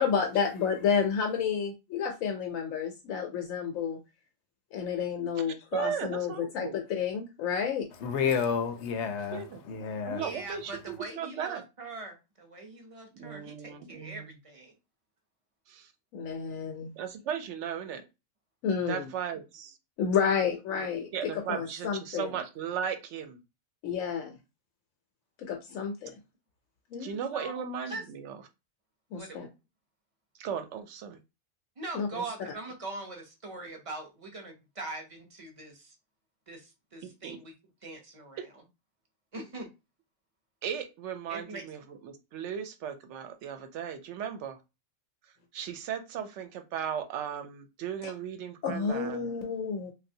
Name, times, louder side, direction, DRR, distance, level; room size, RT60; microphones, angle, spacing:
voice 1, 0.0-4.0 4.7-7.9 16.1-16.9 18.6-19.1 20.0-22.3 23.8-24.4 25.4-26.1 26.9-27.2 29.1-29.5 31.9-32.1 48.0-48.1 48.6-49.9, left 7 dB, 90° left, 1.0 m, -30 dB
voice 2, 5.7-6.8 9.3-9.6 10.0-11.6 13.1-14.3 15.7-15.9 17.0-18.0 18.9-19.8 21.1-23.4 27.0-28.4 30.4-31.2 37.0-37.4 40.6-44.6 45.5-49.3, right 8 dB, 70° right, 0.8 m, -36 dB
voice 3, 8.0-10.2, left 6 dB, 70° left, 0.8 m, -30 dB
voice 4, 10.2-14.8 27.3-27.5 27.9-28.0 29.1-29.5 31.8-36.0 36.5-37.5 37.8-38.6 39.3-39.7 41.3-41.7, right 2 dB, 35° right, 0.5 m, -42 dB
3.2 x 2.3 x 2.6 m
omnidirectional pair, 1.4 m